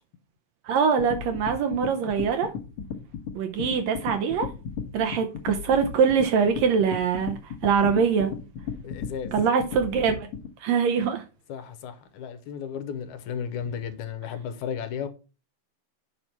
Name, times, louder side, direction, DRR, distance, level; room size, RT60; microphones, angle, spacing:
voice 1, 0.6-2.5 3.3-4.5 4.9-8.3 9.3-10.3 10.6-11.2, right 6 dB, 75° right, 1.7 m, -23 dB
sound 1, 1.0-10.5, left 7 dB, 60° left, 1.6 m, -35 dB
voice 2, 8.8-9.3 11.5-15.1, left 7 dB, 80° left, 2.2 m, -34 dB
7.2 x 5.5 x 4.5 m
omnidirectional pair, 3.6 m